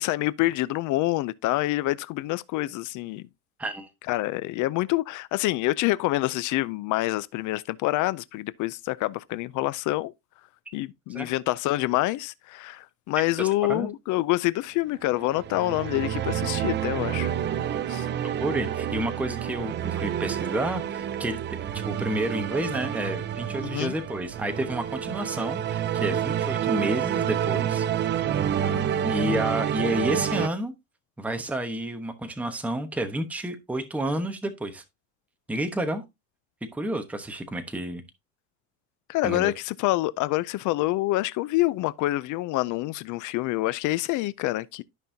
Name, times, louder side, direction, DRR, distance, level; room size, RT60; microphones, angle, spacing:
voice 1, 0.0-3.3 4.1-10.1 10.7-17.3 17.9-18.1 23.6-23.9 28.6-28.9 39.1-44.8, left 18 dB, 50° left, 0.5 m, -27 dB
voice 2, 13.4-13.9 18.4-27.9 29.0-30.7 31.2-34.8 35.5-36.0 36.7-38.0 39.2-39.5, right 1 dB, 5° right, 1.0 m, -30 dB
sound 1, 15.1-30.5, right 9 dB, 30° right, 0.5 m, -28 dB
13.0 x 5.4 x 2.7 m
cardioid pair, 135°, 39 cm